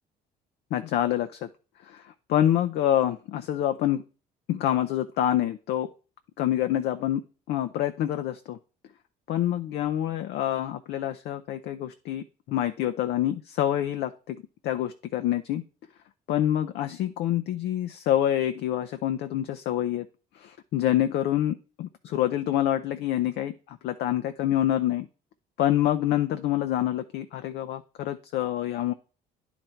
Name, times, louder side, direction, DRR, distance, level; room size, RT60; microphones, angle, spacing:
voice 1, 0.7-1.5 1.8-2.0 2.3-4.0 4.5-5.9 6.4-7.2 7.5-8.6 9.3-14.4 14.6-15.6 16.3-20.1 20.4-25.1 25.6-28.9, left 12 dB, 75° left, 8 dB, 0.6 m, -26 dB
10.5 x 4.1 x 4.5 m, 0.36 s
cardioid pair, 110°, 17 cm